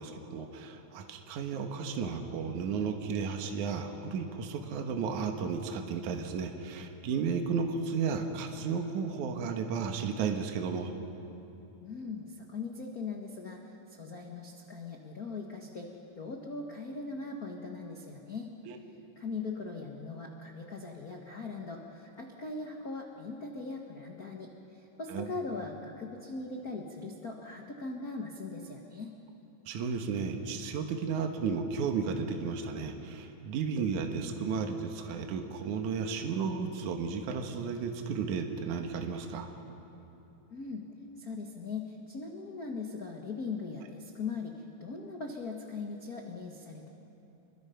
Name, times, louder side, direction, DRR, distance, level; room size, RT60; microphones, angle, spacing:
voice 1, 0.0-10.9 18.7-18.8 25.1-25.3 29.7-39.5, right 5 dB, 65° right, 4 dB, 2.6 m, -33 dB
voice 2, 11.8-15.9 16.2-18.5 19.1-29.1 40.5-40.9 41.2-46.9, left 4 dB, 80° left, 1 dB, 0.8 m, -40 dB
27.0 x 22.5 x 5.7 m, 3.0 s
omnidirectional pair, 4.2 m